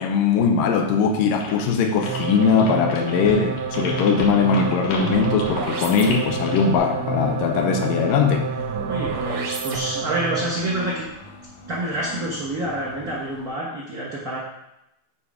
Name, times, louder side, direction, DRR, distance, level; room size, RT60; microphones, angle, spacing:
voice 1, 0.0-8.5, left 6 dB, 90° left, 5 dB, 2.4 m, -20 dB
sound 1, 1.4-6.8, left 3 dB, 70° left, 2.7 m, -34 dB
sound 2, 1.9-10.7, right 6 dB, 65° right, 1.4 m, -29 dB
sound 3, 3.4-13.5, left 1 dB, 55° left, 1.5 m, -41 dB
voice 2, 8.8-11.0 11.7-14.4, right 1 dB, 45° right, -6 dB, 1.3 m, -27 dB
6.7 x 4.9 x 4.9 m, 0.86 s
omnidirectional pair, 3.8 m